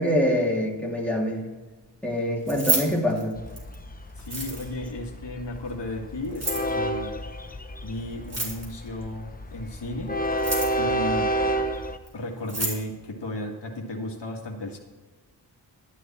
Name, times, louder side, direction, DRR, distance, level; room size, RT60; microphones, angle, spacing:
voice 1, 0.0-1.4 2.0-3.4, equal, 5° left, -3 dB, 2.7 m, -25 dB
Keys jangling, 2.4-3.8 4.2-4.9 6.2-6.7 8.2-8.9 10.2-10.9 12.1-12.2 12.4-12.8, right 2 dB, 35° right, 3.9 m, -29 dB
Train, 3.4-12.0, right 1 dB, 20° left, 0.8 m, -30 dB
voice 2, 4.2-7.2 7.8-10.2 10.8-11.3 12.1-14.8, left 1 dB, 75° left, 0 dB, 2.0 m, -34 dB
12.5 x 9.9 x 4.4 m, 1.3 s
wide cardioid pair, 95°, 42 cm